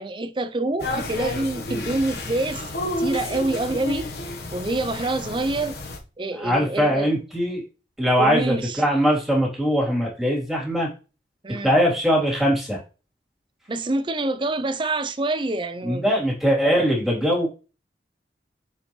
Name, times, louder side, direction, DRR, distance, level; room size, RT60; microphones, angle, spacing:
voice 1, 0.0-4.1 4.5-5.8 6.2-7.1 8.2-8.8 11.4-11.7 13.7-16.1, right 2 dB, 30° right, 0.5 m, -26 dB
sound 1, 0.8-6.0, left 1 dB, 60° left, 1.2 m, -31 dB
voice 2, 6.4-7.6 8.0-10.9 11.6-12.8 15.8-17.5, equal, ahead, 3.0 m, -21 dB
6.8 x 5.4 x 3.1 m
head